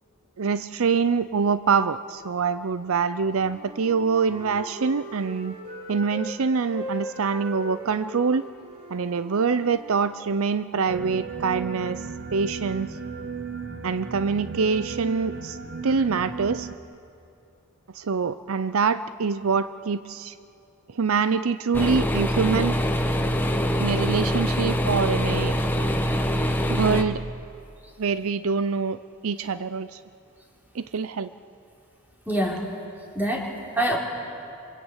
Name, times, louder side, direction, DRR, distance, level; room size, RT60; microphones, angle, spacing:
voice 1, 0.4-5.5 5.9-8.5 8.9-12.0 12.3-12.9 13.8-15.6 15.8-16.7 17.9-20.4 20.9-22.8 23.8-25.5 26.7-27.2 28.0-30.0 30.7-31.3, right 5 dB, 75° right, 13 dB, 0.6 m, -25 dB
Wind instrument woodwind instrument, 3.1-6.4 6.7-10.4, right 1 dB, 30° right, 6.0 m, -40 dB
sound 1, 10.9-16.7, right 5 dB, 55° right, 1.4 m, -35 dB
sound 2, 21.7-27.0, equal, 10° left, 1.2 m, -24 dB
voice 2, 32.3-32.7 33.1-34.0, right 1 dB, 10° right, -2 dB, 3.9 m, -25 dB
26.5 x 24.0 x 8.3 m, 2.6 s
head